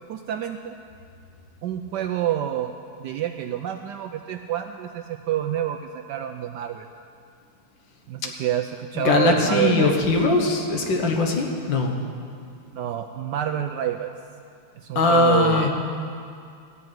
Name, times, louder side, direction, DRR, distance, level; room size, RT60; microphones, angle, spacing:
voice 1, 0.1-0.7 1.6-2.7 3.0-6.9 8.1-10.0 12.7-14.1 14.8-15.7, right 11 dB, 85° right, 6 dB, 0.9 m, -27 dB
voice 2, 9.0-11.9 15.0-15.7, left 3 dB, 60° left, 2 dB, 1.9 m, -20 dB
13.5 x 6.8 x 9.3 m, 2.4 s
omnidirectional pair, 2.4 m